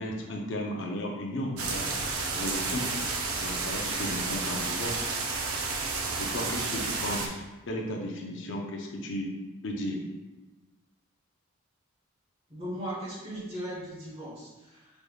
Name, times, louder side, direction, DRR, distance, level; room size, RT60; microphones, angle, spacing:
voice 1, 0.0-1.9 2.3-2.9 3.4-5.1 6.2-9.3 9.6-10.0, left 1 dB, 60° left, 0 dB, 0.6 m, -34 dB
sound 1, 1.6-7.3, right 4 dB, 90° right, 0.6 m, -31 dB
voice 2, 12.5-15.0, equal, 30° right, -5 dB, 1.1 m, -38 dB
4.9 x 3.3 x 2.3 m, 1.1 s
head